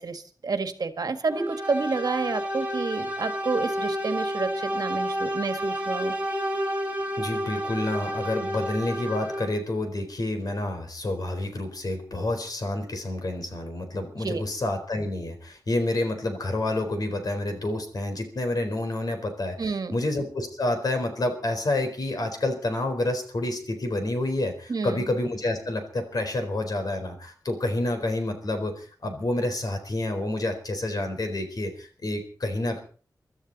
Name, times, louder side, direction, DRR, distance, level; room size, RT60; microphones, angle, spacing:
voice 1, 0.0-6.1 14.2-14.4 19.6-20.0 24.7-25.1, right 4 dB, 65° right, 9 dB, 1.6 m, -29 dB
sound 1, 1.3-9.7, equal, 20° right, 2.3 m, -30 dB
voice 2, 7.2-32.8, left 2 dB, 65° left, 6 dB, 4.2 m, -29 dB
24.0 x 13.0 x 4.1 m, 0.40 s
wide cardioid pair, 110°, 7 cm